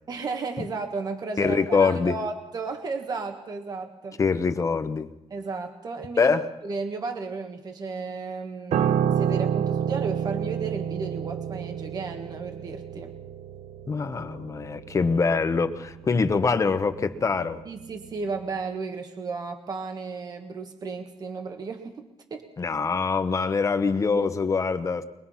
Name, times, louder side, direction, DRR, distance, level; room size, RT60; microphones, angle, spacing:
voice 1, 0.1-4.2 5.3-6.4 6.6-13.1 17.6-22.5, right 4 dB, 40° right, 1.6 m, -34 dB
voice 2, 1.4-2.1 4.2-5.1 6.2-6.4 13.9-17.6 22.6-25.0, left 4 dB, 30° left, 0.9 m, -24 dB
Piano, 8.7-18.1 18.4-18.6, right 8 dB, 85° right, 0.7 m, -29 dB
23.5 x 20.5 x 5.7 m
wide cardioid pair, 175°, 11 cm